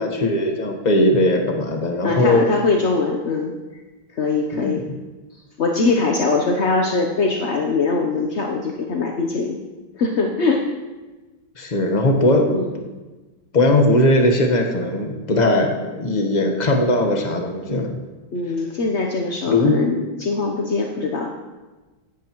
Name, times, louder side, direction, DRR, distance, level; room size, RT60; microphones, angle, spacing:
voice 1, 0.0-2.5 4.5-4.8 11.6-12.6 13.5-18.0 19.5-19.8, left 1 dB, 25° left, 2 dB, 1.0 m, -19 dB
voice 2, 2.0-3.5 4.1-4.8 5.6-9.6 9.9-10.7 12.5-12.7 18.3-21.3, left 3 dB, 60° left, 2 dB, 0.7 m, -22 dB
16.5 x 11.5 x 3.0 m, 1.2 s
omnidirectional pair, 2.3 m